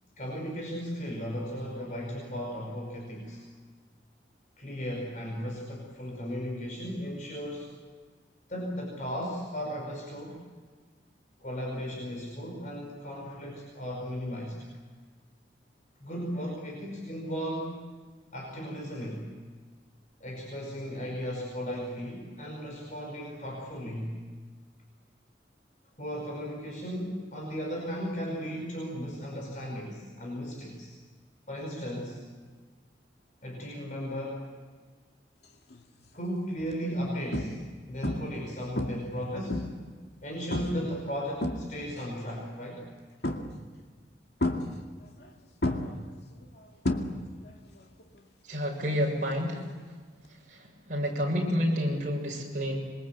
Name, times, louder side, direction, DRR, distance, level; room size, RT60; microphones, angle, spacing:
voice 1, 0.2-3.4 4.6-7.7 8.5-10.4 11.4-14.7 16.0-17.9 18.3-19.3 20.2-24.2 26.0-30.9 31.5-32.2 33.4-34.5 36.1-37.6 37.9-39.7 40.2-42.9, equal, 45° left, -1 dB, 5.4 m, -36 dB
sound 1, 35.7-36.0 36.6-36.7 37.3-37.7 38.0-38.4 38.8-39.9 40.5-40.9 41.2-42.0 43.2-43.7 44.4-45.3 45.6-47.5 47.8-48.2 50.2-50.3, left 1 dB, 65° left, 2.4 m, -31 dB
voice 2, 48.4-50.0 50.3-52.8, equal, 45° right, -2 dB, 6.8 m, -30 dB
26.5 x 23.0 x 8.3 m, 1.5 s
head